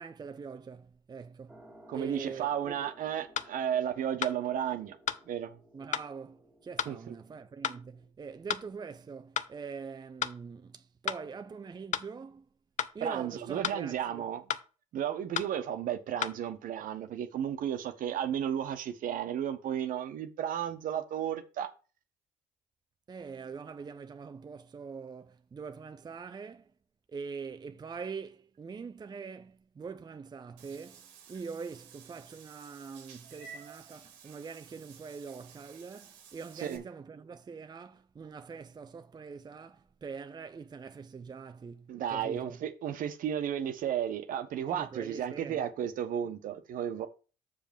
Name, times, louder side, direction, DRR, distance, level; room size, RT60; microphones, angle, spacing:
voice 1, 0.0-1.6 1.9-2.9 5.7-12.5 12.9-14.2 23.1-26.7 27.1-42.6 44.7-45.7, right 5 dB, 30° right, 0.6 m, -44 dB
sound 1, 1.5-8.1, equal, 10° right, 2.3 m, -58 dB
voice 2, 1.9-5.0 5.3-5.6 6.9-7.1 13.0-14.4 14.9-21.7 36.6-36.8 41.9-47.1, right 9 dB, 65° right, 1.2 m, -33 dB
sound 2, 3.4-3.5 4.2-4.4 5.1-5.2 5.9-6.1 6.8-7.0 7.6-7.8 8.5-8.7 9.4-9.5 10.2-10.4 11.1-11.2 11.9-12.1 12.8-13.0 13.6-13.8 14.5-14.7 15.4-15.5 16.2-16.4, left 9 dB, 55° left, 0.7 m, -33 dB
Meow / Water / Bathtub (filling or washing), 30.6-36.8, right 6 dB, 85° right, 1.6 m, -53 dB
7.1 x 5.1 x 5.3 m
hypercardioid pair, 60°, 15 cm